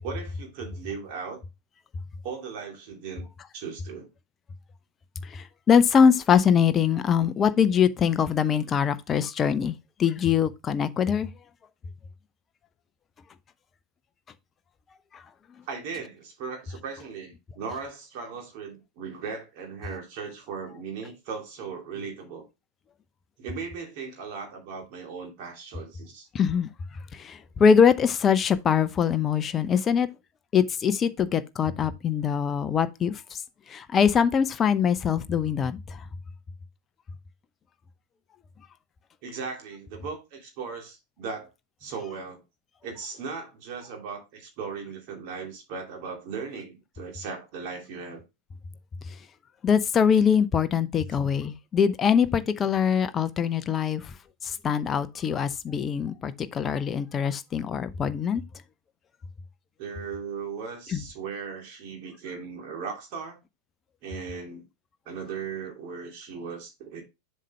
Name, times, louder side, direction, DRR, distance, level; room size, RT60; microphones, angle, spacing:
voice 1, 0.0-1.4 2.2-3.3 3.5-4.1 15.7-22.4 23.4-26.3 39.2-41.5 41.8-42.4 42.8-48.2 59.8-63.4 64.0-64.6 65.1-67.0, right 5 dB, 45° right, 2.5 m, -37 dB
voice 2, 5.3-9.7 10.0-11.3 15.1-15.2 26.3-26.7 27.1-30.1 30.5-33.2 33.7-36.0 49.6-54.1 54.4-58.4 60.9-61.0, left 7 dB, 25° left, 0.6 m, -23 dB
7.5 x 5.5 x 3.2 m
figure-of-eight pair, 90°, 0 cm